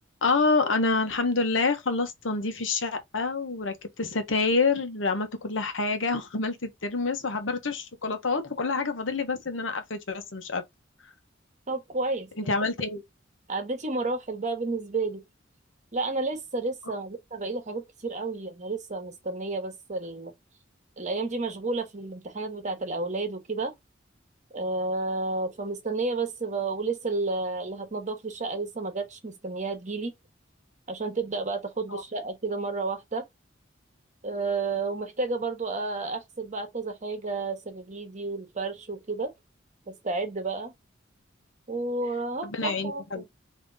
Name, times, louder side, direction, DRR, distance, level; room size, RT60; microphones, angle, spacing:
voice 1, 0.2-10.6 12.4-13.0 31.9-32.0 42.4-43.2, left 3 dB, 75° left, 1.0 m, -27 dB
voice 2, 11.7-12.7 13.5-15.2 15.9-20.3 21.0-23.7 24.5-30.1 30.9-33.2 34.2-39.3 39.9-40.7 41.7-43.3, right 3 dB, 40° right, 1.2 m, -31 dB
3.7 x 2.8 x 3.9 m
head